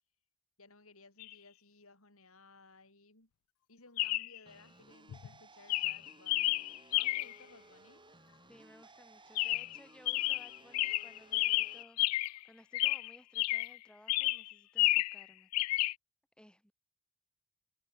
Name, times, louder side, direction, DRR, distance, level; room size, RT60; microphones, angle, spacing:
voice 1, 0.6-3.3 3.7-6.7 6.9-8.0, left 3 dB, 70° left, 4.1 m, -59 dB
Chirp tweet, 1.2-1.3 4.0-4.4 5.1-5.3 5.7-7.4 9.4-9.8 10.1-12.4 12.7-13.8 14.1-15.2 15.5-15.9, left 19 dB, 90° left, 0.3 m, -31 dB
sound 1, 4.5-11.8, right 2 dB, 20° right, 7.7 m, -59 dB
voice 2, 8.5-15.5 16.4-16.7, equal, 5° left, 2.7 m, -60 dB
head